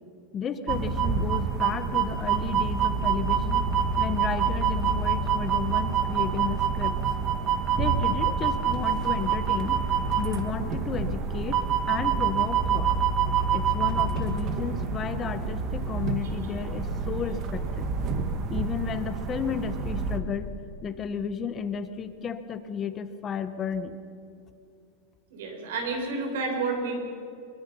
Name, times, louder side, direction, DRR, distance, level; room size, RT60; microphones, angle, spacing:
voice 1, 0.3-3.6 4.0-7.0 7.7-9.8 10.2-11.6 11.9-12.9 13.5-17.9 18.5-20.5 20.8-24.0, left 7 dB, 20° left, 10 dB, 1.1 m, -33 dB
sound 1, 0.7-20.2, right 6 dB, 30° right, 1.7 m, -27 dB
voice 2, 25.3-27.0, right 3 dB, 75° right, 2 dB, 7.1 m, -30 dB
25.0 x 23.5 x 5.6 m, 2.6 s
supercardioid pair, 165°, 0 cm